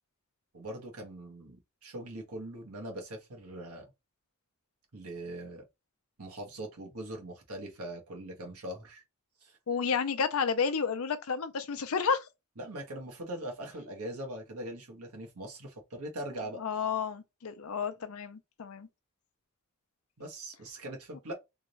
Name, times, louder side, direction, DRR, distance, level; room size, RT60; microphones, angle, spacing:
voice 1, 0.5-3.9 4.9-5.6 6.2-9.0 9.4-9.6 12.6-16.6 20.2-21.3, right 1 dB, 80° right, 1.3 m, -41 dB
voice 2, 9.7-12.3 16.6-18.9, left 6 dB, 70° left, 0.5 m, -31 dB
3.6 x 2.5 x 3.1 m
head